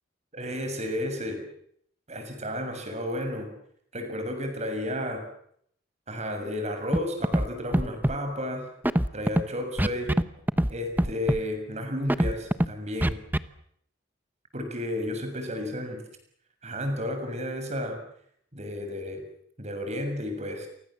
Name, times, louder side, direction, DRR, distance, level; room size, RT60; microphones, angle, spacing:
voice 1, 0.3-1.4 2.1-3.5 3.9-5.3 6.1-8.7 9.1-10.1 10.7-13.2 14.5-16.0 16.6-18.0 18.5-19.2 19.6-20.7, left 1 dB, 35° right, 6 dB, 6.9 m, -32 dB
Scratching (performance technique), 6.9-7.0 7.2-7.5 7.7-8.1 8.8-9.4 9.8-10.2 10.5-10.7 11.0-11.4 12.1-12.7 13.0-13.4, equal, 10° right, 1.0 m, -22 dB
30.0 x 24.0 x 7.6 m, 0.69 s
head